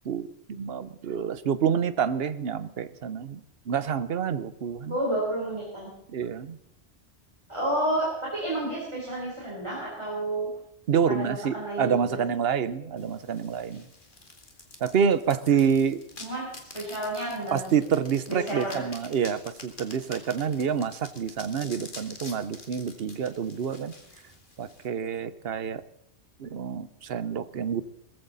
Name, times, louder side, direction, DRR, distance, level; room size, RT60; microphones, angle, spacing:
voice 1, 0.0-5.0 6.1-6.6 10.9-13.9 14.8-16.0 17.5-23.9 24.6-25.8 26.4-27.8, right 7 dB, 60° right, 14 dB, 1.0 m, -27 dB
voice 2, 4.9-5.9 7.5-10.5 11.1-12.2 16.2-17.7 18.3-18.8, right 1 dB, 25° right, -4 dB, 3.9 m, -30 dB
sound 1, 13.0-24.9, left 2 dB, 45° left, 2.3 m, -47 dB
19.5 x 15.0 x 4.1 m, 0.74 s
omnidirectional pair, 1.2 m